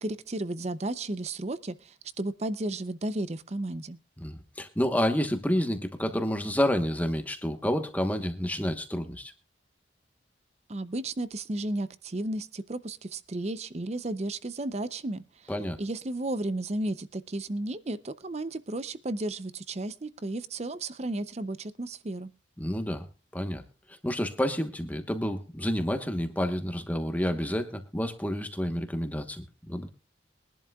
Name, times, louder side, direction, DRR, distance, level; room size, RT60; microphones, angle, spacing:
voice 1, 0.0-4.0 10.7-15.5 15.8-22.3, right 2 dB, 35° right, 15 dB, 0.6 m, -33 dB
voice 2, 4.2-9.3 15.5-15.8 22.6-23.1 23.3-23.6 23.9-29.9, equal, 10° left, 7 dB, 1.1 m, -29 dB
22.5 x 11.0 x 2.3 m, 0.31 s
head